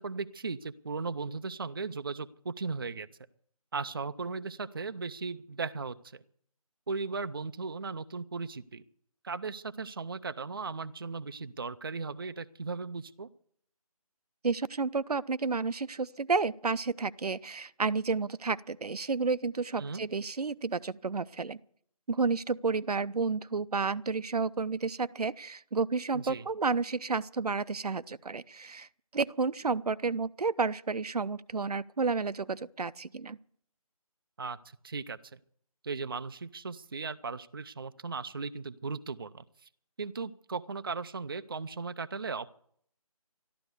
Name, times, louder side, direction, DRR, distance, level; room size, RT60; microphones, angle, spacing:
voice 1, 0.0-3.1 3.7-6.2 6.9-8.8 9.2-13.3 19.8-20.0 26.1-26.4 34.4-34.6 34.8-35.4 35.8-39.7 40.0-42.5, right 4 dB, 35° right, 0.5 m, -37 dB
voice 2, 14.4-21.6 22.1-28.9 29.1-33.4, right 4 dB, 90° right, 0.7 m, -31 dB
13.0 x 12.5 x 8.1 m
figure-of-eight pair, 170°, 19 cm